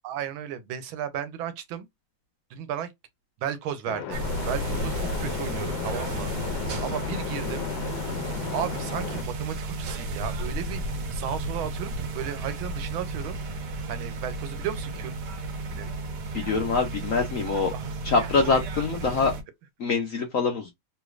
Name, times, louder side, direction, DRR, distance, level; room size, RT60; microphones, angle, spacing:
voice 1, 0.0-1.9 2.5-2.9 3.4-4.2 4.5-6.3 6.8-7.7 8.5-10.8 11.1-13.4 13.9-15.2 15.7-15.9 17.7-17.9, right 9 dB, 80° right, 1.5 m, -34 dB
sound 1, 3.9-9.2, left 10 dB, 80° left, 1.3 m, -34 dB
sound 2, 4.1-19.4, right 2 dB, 65° right, 1.3 m, -33 dB
voice 2, 16.3-17.7 18.0-19.3 19.8-20.7, left 4 dB, 60° left, 0.8 m, -24 dB
3.3 x 3.1 x 2.3 m
omnidirectional pair, 2.2 m